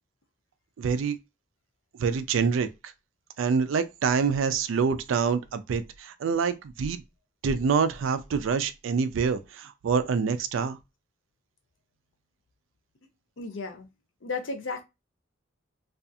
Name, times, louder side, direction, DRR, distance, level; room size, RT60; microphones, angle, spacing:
voice 1, 0.8-1.2 2.0-2.7 3.4-7.0 7.4-10.8, right 5 dB, 75° right, 0.3 m, -26 dB
voice 2, 13.4-13.9 14.2-14.8, left 4 dB, 75° left, 0.6 m, -34 dB
2.4 x 2.3 x 2.6 m
head